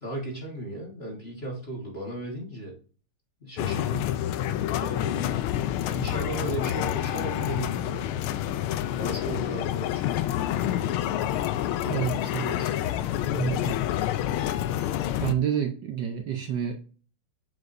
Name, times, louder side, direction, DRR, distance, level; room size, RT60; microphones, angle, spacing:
voice 1, 0.0-2.8 3.4-4.1 4.7-5.3 5.5-8.1 9.0-10.1, right 1 dB, 30° left, -1 dB, 1.5 m, -36 dB
sound 1, 3.6-15.3, left 12 dB, 80° left, 1.4 m, -28 dB
voice 2, 11.8-12.8 13.3-13.8 15.2-16.7, right 9 dB, 65° right, 4 dB, 1.2 m, -29 dB
7.8 x 5.0 x 2.6 m, 0.38 s
omnidirectional pair, 2.4 m